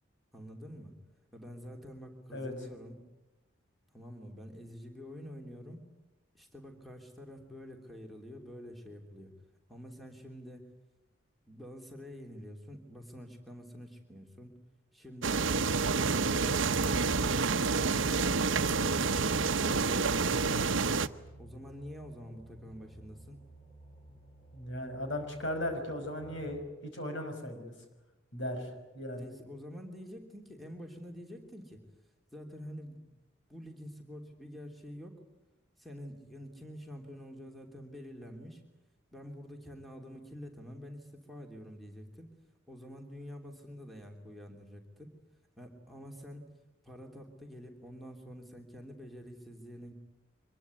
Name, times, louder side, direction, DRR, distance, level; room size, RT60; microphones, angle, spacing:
voice 1, 0.3-0.9 1.3-3.0 3.9-5.8 6.3-9.3 9.7-10.7 11.5-14.6 14.9-15.4 18.9-20.8 21.4-23.4 28.6-28.7 29.1-31.8 32.3-33.0 33.5-35.2 35.8-38.6 39.1-42.3 42.7-45.1 45.6-46.4 46.8-49.9, equal, ahead, 2 dB, 3.2 m, -47 dB
sound 1, 15.2-21.1, right 4 dB, 75° right, 0.9 m, -28 dB
sound 2, 15.4-26.7, right 1 dB, 25° left, 5.2 m, -53 dB
voice 2, 24.5-27.7 28.3-29.2, left 1 dB, 65° left, 5 dB, 5.6 m, -37 dB
25.0 x 22.0 x 9.5 m, 1.0 s
head